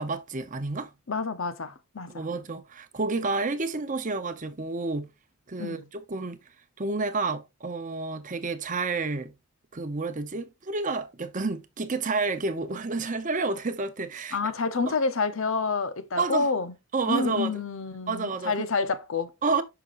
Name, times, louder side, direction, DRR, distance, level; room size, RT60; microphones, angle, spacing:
voice 1, 0.0-0.9 2.1-5.1 5.5-6.4 6.8-9.3 9.7-14.4 16.2-16.5 16.9-17.6 18.1-18.5 19.4-19.6, right 3 dB, 35° right, 0.8 m, -30 dB
voice 2, 1.1-2.3 5.6-5.8 14.3-16.7 17.1-19.3, left 4 dB, 60° left, 0.8 m, -28 dB
7.9 x 5.9 x 2.5 m
head